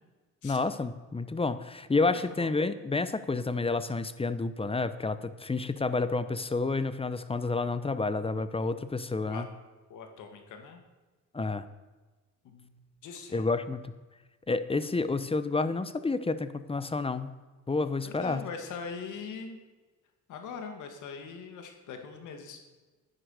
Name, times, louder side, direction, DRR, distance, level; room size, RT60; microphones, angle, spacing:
voice 1, 0.4-9.5 11.3-11.7 13.3-13.9 14.5-17.3 17.7-18.4, left 3 dB, 20° left, 13 dB, 0.8 m, -30 dB
voice 2, 9.9-10.8 12.4-13.4 18.0-19.6 20.3-22.6, left 5 dB, 85° left, 5 dB, 2.2 m, -42 dB
10.5 x 9.9 x 6.6 m, 1.3 s
cardioid pair, 90°, 30 cm